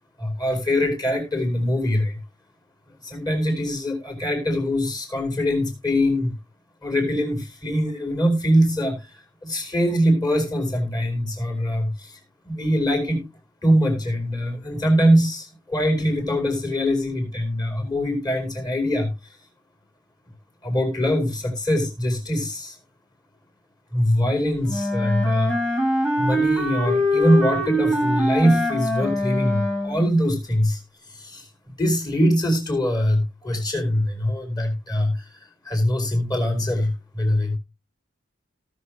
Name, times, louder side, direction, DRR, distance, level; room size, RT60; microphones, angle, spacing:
voice 1, 0.2-2.2 3.0-6.3 6.8-9.1 9.4-12.2 12.4-13.2 13.6-19.1 20.6-22.8 23.9-25.5 26.2-30.8 31.1-31.5 31.8-35.3 35.6-37.6, equal, 20° left, 4 dB, 4.7 m, -23 dB
Wind instrument woodwind instrument, 24.7-30.1, equal, 5° left, 2.7 m, -23 dB
18.0 x 6.5 x 3.0 m, 0.26 s
head